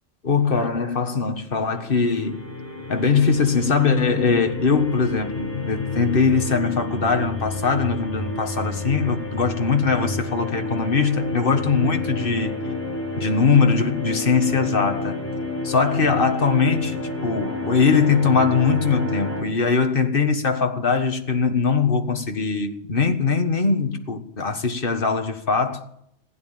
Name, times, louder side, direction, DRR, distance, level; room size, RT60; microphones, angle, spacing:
voice 1, 0.2-2.5 2.9-12.5 13.2-15.2 15.6-25.8, left 5 dB, 45° left, 1.7 m, -21 dB
sound 1, 1.6-19.4, left 2 dB, 10° left, 4.7 m, -30 dB
15.5 x 9.8 x 8.9 m
omnidirectional pair, 1.4 m